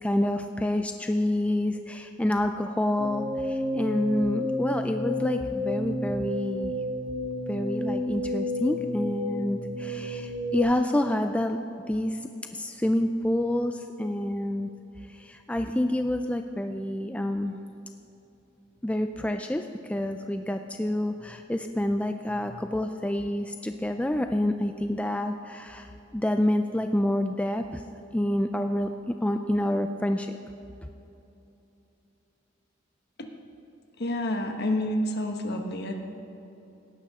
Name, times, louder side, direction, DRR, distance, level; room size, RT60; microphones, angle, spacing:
voice 1, 0.0-6.7 7.5-11.6 11.9-14.7 15.1-17.6 18.8-27.8 28.1-30.4, left 1 dB, 5° left, 6 dB, 0.3 m, -28 dB
sound 1, 3.0-10.6, left 1 dB, 25° right, 1.7 m, -31 dB
voice 2, 34.0-36.0, left 1 dB, 55° left, 4 dB, 1.2 m, -29 dB
18.0 x 11.0 x 3.6 m, 2.9 s
head